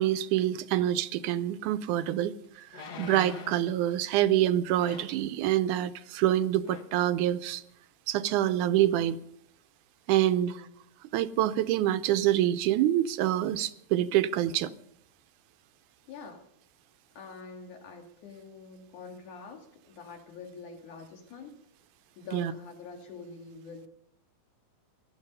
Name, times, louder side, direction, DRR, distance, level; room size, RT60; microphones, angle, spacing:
voice 1, 0.0-2.3 3.0-7.6 8.1-9.2 10.1-10.6 11.1-14.7 22.3-22.5, right 12 dB, 80° right, 2.2 m, -26 dB
sound 1, 1.7-1.8 2.7-3.7 4.8-5.2 6.2-6.4 6.6-7.0 7.5-7.6, left 4 dB, 60° left, 1.0 m, -43 dB
voice 2, 10.1-10.8 16.1-16.4 17.2-21.5 22.2-23.9, left 4 dB, 75° left, 3.7 m, -46 dB
19.0 x 12.5 x 5.5 m
omnidirectional pair, 3.5 m